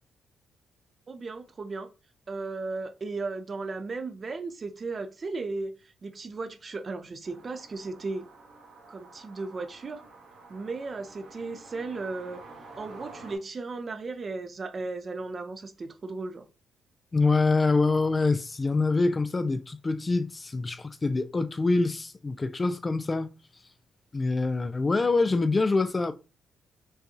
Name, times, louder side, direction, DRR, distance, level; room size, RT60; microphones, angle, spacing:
voice 1, 1.1-1.9 2.3-8.3 8.9-10.0 10.5-12.4 12.8-16.4, right 3 dB, 35° right, 0.6 m, -35 dB
sound 1, 7.2-13.4, right 3 dB, 70° right, 1.4 m, -49 dB
voice 2, 17.1-23.3 24.1-26.1, left 3 dB, 25° left, 0.3 m, -25 dB
5.4 x 2.3 x 2.7 m
cardioid pair, 90°, 0 cm